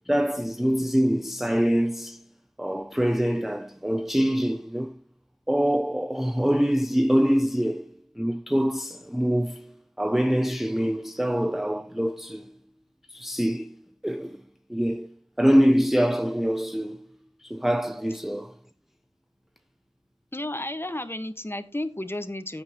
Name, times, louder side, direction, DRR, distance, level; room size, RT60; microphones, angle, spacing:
voice 1, 0.1-2.2 2.6-5.0 5.5-12.5 13.1-14.4 14.7-17.1 17.4-18.6, equal, ahead, 0.5 m, -25 dB
voice 2, 20.3-22.6, left 1 dB, 20° left, 1.4 m, -32 dB
14.5 x 8.7 x 3.0 m
wide cardioid pair, 50°, 11 cm